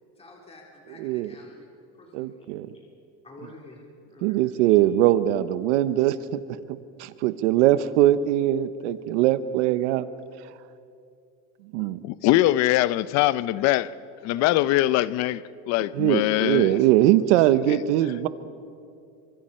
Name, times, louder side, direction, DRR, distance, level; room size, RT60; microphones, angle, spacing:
voice 1, 0.2-1.7 2.0-2.9 3.2-4.8, left 2 dB, 15° left, -1 dB, 3.8 m, -49 dB
voice 2, 1.0-1.3 2.1-2.7 4.2-6.2 6.7-10.0 11.7-12.0 15.9-18.3, right 13 dB, 80° right, 13 dB, 1.0 m, -21 dB
voice 3, 12.0-13.9 14.2-15.4 15.7-16.8 17.7-17.8, left 15 dB, 50° left, 18 dB, 0.7 m, -22 dB
28.0 x 24.5 x 4.4 m, 2.4 s
supercardioid pair, 140°, 34 cm